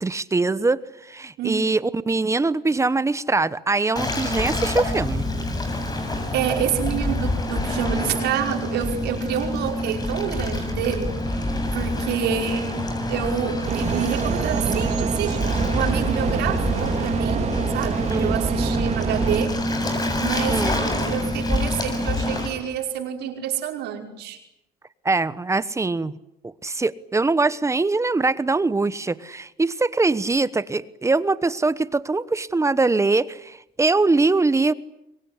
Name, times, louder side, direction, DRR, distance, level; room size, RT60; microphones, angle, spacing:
voice 1, 0.0-5.2 18.1-18.4 20.5-20.8 25.0-26.1 26.4-34.7, right 3 dB, 15° right, 17 dB, 1.1 m, -22 dB
voice 2, 1.4-1.7 6.3-11.5 11.7-19.6 20.2-24.4, right 9 dB, 80° right, 3 dB, 5.3 m, -28 dB
Waves surf, 4.0-22.5, left 1 dB, 25° left, 7.4 m, -26 dB
sound 1, 13.7-19.5, right 6 dB, 40° right, 3.9 m, -26 dB
26.5 x 23.0 x 9.7 m, 0.82 s
cardioid pair, 110°, 17 cm